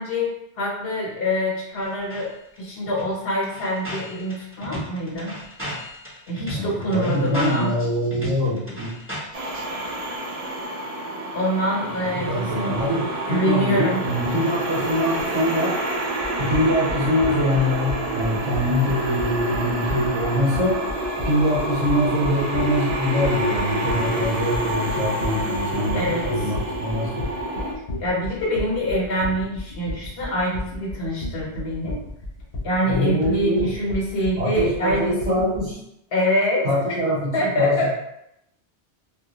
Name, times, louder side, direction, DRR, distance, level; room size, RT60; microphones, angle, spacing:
voice 1, 0.0-2.3 2.6-5.3 6.3-7.7 11.3-14.0 25.9-26.6 28.0-32.0 32.6-35.4 36.1-36.6 37.3-37.9, equal, 65° left, -3 dB, 0.9 m, -25 dB
sound 1, 1.8-2.2 2.6-2.7 2.9-9.6, equal, 15° right, 0.6 m, -35 dB
voice 2, 6.5-8.9 12.3-15.7 16.4-20.7 21.2-27.3 32.8-33.7 34.4-35.8 36.6-37.3 37.6-37.9, equal, 40° right, -8 dB, 0.9 m, -23 dB
sound 2, 9.3-27.7, right 1 dB, 60° right, 0.4 m, -28 dB
sound 3, 16.2-35.7, left 2 dB, 45° left, 0.5 m, -32 dB
2.2 x 2.2 x 2.8 m, 0.79 s
omnidirectional pair, 1.1 m